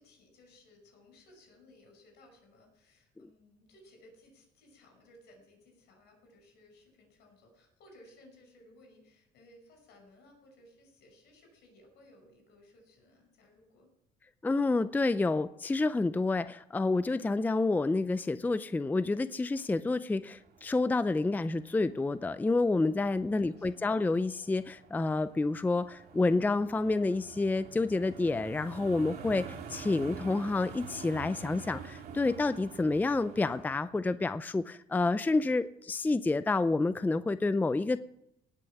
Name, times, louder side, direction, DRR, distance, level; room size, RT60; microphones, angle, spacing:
voice 1, 0.0-13.9 23.1-23.9, left 1 dB, 80° left, 3 dB, 5.7 m, -60 dB
voice 2, 14.4-38.0, left 3 dB, 10° left, 14 dB, 0.4 m, -29 dB
sound 1, 20.3-33.8, right 6 dB, 65° right, 2.2 m, -48 dB
18.5 x 6.3 x 7.2 m, 0.81 s
cardioid pair, 110°, 17 cm